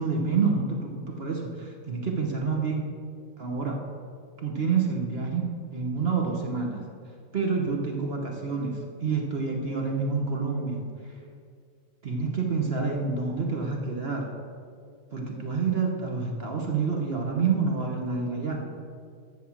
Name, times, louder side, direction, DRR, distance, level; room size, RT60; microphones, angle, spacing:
voice 1, 0.0-2.9 3.4-3.8 4.4-6.8 7.3-11.1 12.0-14.3 15.1-18.6, right 4 dB, 45° right, 1 dB, 0.8 m, -28 dB
12.5 x 4.2 x 7.1 m, 2.2 s
omnidirectional pair, 2.1 m